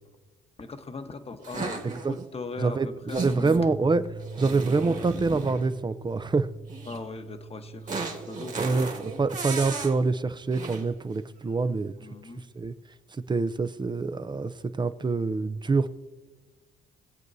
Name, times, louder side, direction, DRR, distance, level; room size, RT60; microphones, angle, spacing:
voice 1, 0.6-3.6 6.9-9.1 12.0-12.4, left 3 dB, 30° left, 7 dB, 1.1 m, -39 dB
sound 1, 1.4-2.2 3.1-3.6 4.2-5.7 6.7-7.0 7.9-10.0 10.5-10.9, right 4 dB, 40° right, 1.9 m, -35 dB
voice 2, 1.8-2.2 2.6-4.0 4.4-6.5 8.6-8.9 9.2-11.9 12.6-12.7 13.3-15.9, right 3 dB, 20° right, 13 dB, 0.5 m, -26 dB
sound 2, 3.6-9.8, right 4 dB, 65° right, 2.6 m, -43 dB
21.5 x 8.2 x 2.7 m, 1.2 s
cardioid pair, 90°, 20 cm